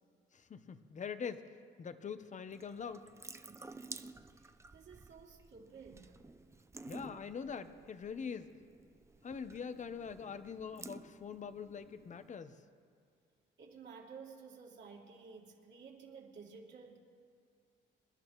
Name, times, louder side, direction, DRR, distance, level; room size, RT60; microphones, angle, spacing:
voice 1, 0.3-3.1 6.9-8.5 9.2-12.6, left 6 dB, 40° left, 11 dB, 0.8 m, -44 dB
Water tap faucet / Sink (filling or washing) / Drip, 2.5-12.3, right 3 dB, 15° right, 0.6 m, -53 dB
voice 2, 3.5-6.2 13.6-17.0, right 5 dB, 65° right, -2 dB, 2.8 m, -54 dB
27.5 x 12.0 x 3.1 m, 2.4 s
cardioid pair, 90°, 20 cm